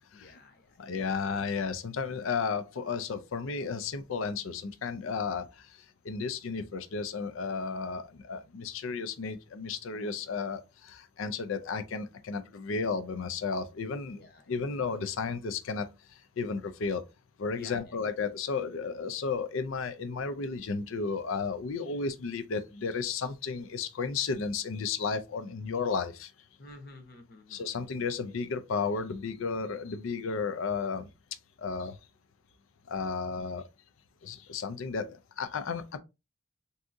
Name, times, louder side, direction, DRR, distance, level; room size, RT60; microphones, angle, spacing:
voice 1, 0.1-0.8 14.1-14.6 17.5-18.0 26.6-27.6, left 2 dB, 50° left, 0.8 m, -51 dB
voice 2, 0.8-14.2 14.5-17.0 17.4-26.3 27.5-31.1 31.6-32.0 32.9-33.7 34.2-36.0, left 5 dB, 75° left, 0.4 m, -33 dB
3.5 x 2.7 x 2.5 m
head